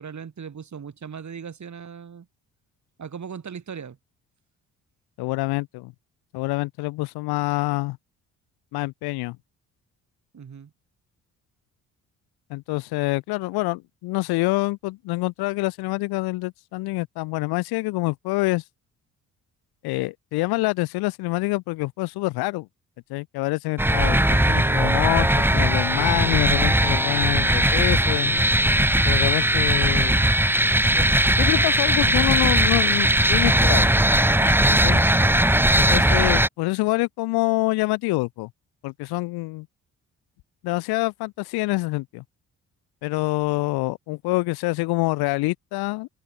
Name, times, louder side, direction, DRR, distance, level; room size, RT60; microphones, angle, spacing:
voice 1, 0.0-2.3 3.0-4.0 10.3-10.7 24.6-24.9 35.1-35.5, right 7 dB, 50° right, 7.2 m, -38 dB
voice 2, 5.2-5.9 6.3-8.0 8.7-9.4 12.5-18.6 19.8-22.7 23.1-28.4 29.0-30.3 30.9-31.0 31.4-33.9 34.7-35.0 35.8-38.5 38.8-39.7 40.6-42.2 43.0-46.1, left 22 dB, 85° left, 1.6 m, -26 dB
sound 1, 23.8-36.5, right 1 dB, 5° right, 3.0 m, -19 dB
supercardioid pair, 55°, 37 cm